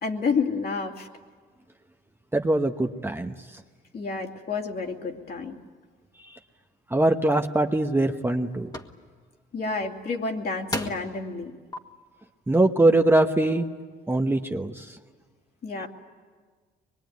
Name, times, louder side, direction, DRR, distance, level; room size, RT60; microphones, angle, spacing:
voice 1, 0.0-1.1 3.9-5.5 9.5-11.5 15.6-15.9, left 4 dB, 50° left, 2 dB, 2.7 m, -29 dB
voice 2, 2.3-3.3 6.3-6.4 6.9-8.7 12.5-13.7 14.1-15.0, right 2 dB, 10° right, 5 dB, 1.0 m, -22 dB
sound 1, 7.4-7.5 8.0-8.4 8.7-8.9 10.1-10.2 10.7-11.2 11.7-11.8, left 1 dB, 20° left, 1.8 m, -32 dB
23.5 x 22.0 x 9.4 m, 1.5 s
cardioid pair, 90°, 20 cm